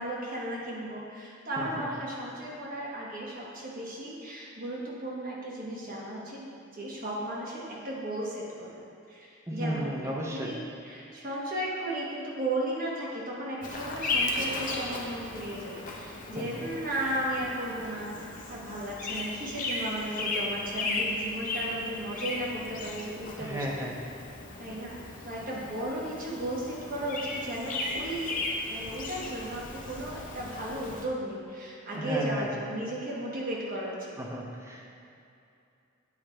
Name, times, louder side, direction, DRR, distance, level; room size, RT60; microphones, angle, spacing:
voice 1, 0.0-8.7 9.1-23.6 24.6-28.4 28.7-34.1, right 1 dB, 45° right, -4 dB, 1.2 m, -35 dB
voice 2, 1.6-1.9 9.5-10.5 16.4-16.7 23.4-24.0 31.9-32.5 34.2-34.9, equal, 15° right, -2 dB, 0.7 m, -34 dB
Bird vocalization bird call bird song, 13.6-31.0, left 2 dB, 40° left, 0.6 m, -36 dB
8.5 x 3.2 x 4.4 m, 2.6 s
head